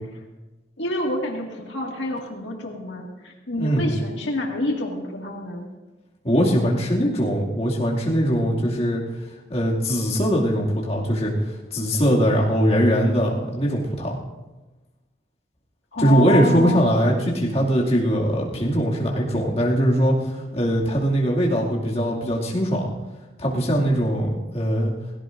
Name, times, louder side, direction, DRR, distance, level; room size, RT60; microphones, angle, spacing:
voice 1, 0.8-5.7 15.9-16.8, left 2 dB, 90° left, 0 dB, 2.1 m, -28 dB
voice 2, 3.6-3.9 6.2-9.0 9.5-11.3 11.7-14.2 16.0-22.9 23.4-24.9, equal, 35° left, -4 dB, 2.4 m, -21 dB
17.0 x 16.5 x 2.6 m, 1.1 s
head